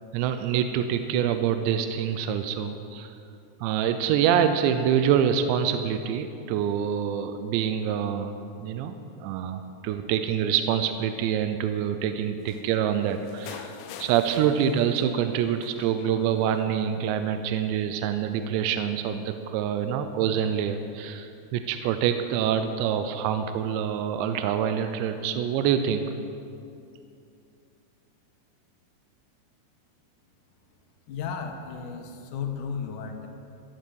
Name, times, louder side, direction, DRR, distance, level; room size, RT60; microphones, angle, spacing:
voice 1, 0.1-3.1 3.6-13.7 14.0-26.1, right 8 dB, 85° right, 8 dB, 2.9 m, -26 dB
sound 1, 12.5-15.3 15.6-16.6 17.5-17.6, left 9 dB, 85° left, 2.9 m, -45 dB
voice 2, 31.1-33.3, left 6 dB, 70° left, 4 dB, 2.1 m, -34 dB
13.5 x 13.0 x 6.4 m, 2.5 s
omnidirectional pair, 5.0 m